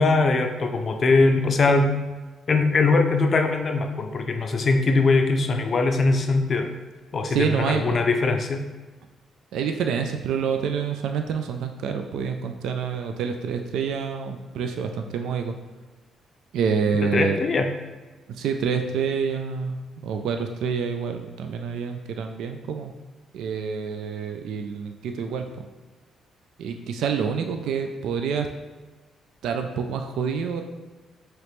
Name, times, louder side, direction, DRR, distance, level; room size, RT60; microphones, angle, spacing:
voice 1, 0.0-2.0 2.5-6.7 7.1-8.6 17.0-17.7, left 3 dB, 45° left, 5 dB, 0.4 m, -21 dB
voice 2, 7.3-8.0 9.5-15.5 16.5-17.4 18.4-22.9 23.3-25.7 26.6-28.5 29.4-30.6, right 6 dB, 80° right, 5 dB, 0.3 m, -27 dB
4.9 x 3.0 x 3.1 m, 1.3 s
cardioid pair, 90°, 0 cm